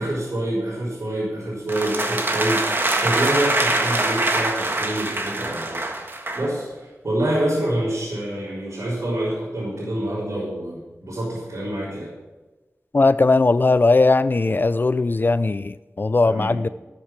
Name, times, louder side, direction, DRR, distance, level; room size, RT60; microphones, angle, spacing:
voice 1, 0.0-5.9 6.3-12.1 16.2-16.6, right 1 dB, 85° right, -9 dB, 4.1 m, -26 dB
sound 1, 1.7-6.5, right 2 dB, 45° right, 1.6 m, -24 dB
voice 2, 12.9-16.7, left 3 dB, 40° left, 15 dB, 0.3 m, -18 dB
13.0 x 7.2 x 6.0 m, 1.2 s
wide cardioid pair, 70°, 5 cm